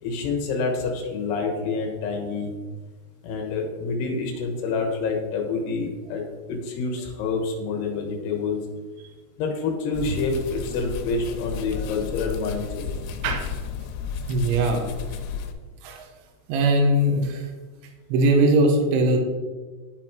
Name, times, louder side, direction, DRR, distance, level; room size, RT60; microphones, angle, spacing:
voice 1, 0.0-2.5 3.2-8.6 9.4-12.8, left 4 dB, 70° left, 1 dB, 2.9 m, -27 dB
sound 1, 9.9-15.5, left 6 dB, 90° left, 3.2 m, -33 dB
voice 2, 14.3-14.8 15.8-16.1 16.5-17.5 18.1-19.2, right 1 dB, 75° right, 2 dB, 3.3 m, -20 dB
12.0 x 4.1 x 4.4 m, 1.3 s
omnidirectional pair, 5.7 m